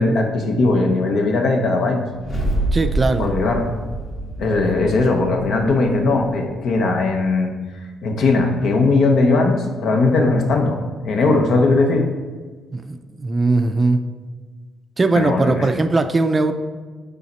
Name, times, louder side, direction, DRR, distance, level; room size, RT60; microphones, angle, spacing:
voice 1, 0.0-2.0 3.2-3.7 4.4-7.5 8.0-12.1 15.1-15.6, left 3 dB, 70° left, 3 dB, 0.8 m, -18 dB
sound 1, 2.2-6.5, right 1 dB, 45° left, 1.5 m, -26 dB
voice 2, 2.7-3.3 12.7-14.0 15.0-16.5, right 3 dB, 30° right, 8 dB, 0.4 m, -19 dB
5.6 x 4.0 x 4.3 m, 1.4 s
cardioid pair, 90°, 0 cm